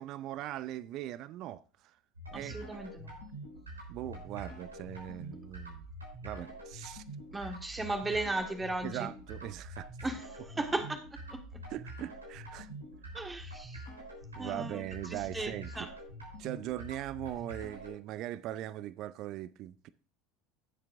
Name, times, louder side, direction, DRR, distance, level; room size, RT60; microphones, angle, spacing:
voice 1, 0.0-2.0 2.3-2.6 3.9-5.9 6.2-7.0 8.8-9.9 11.7-12.7 14.4-15.9 16.4-19.9, right 13 dB, 50° right, 0.5 m, -40 dB
sound 1, 2.1-17.9, right 1 dB, 90° right, 3.7 m, -46 dB
voice 2, 2.3-3.1 7.3-9.1 10.0-11.0 11.3-11.4 13.1-13.8 14.4-14.8 15.1-15.9, right 2 dB, 15° right, 1.6 m, -36 dB
16.5 x 7.5 x 2.5 m
figure-of-eight pair, 70°, 0 cm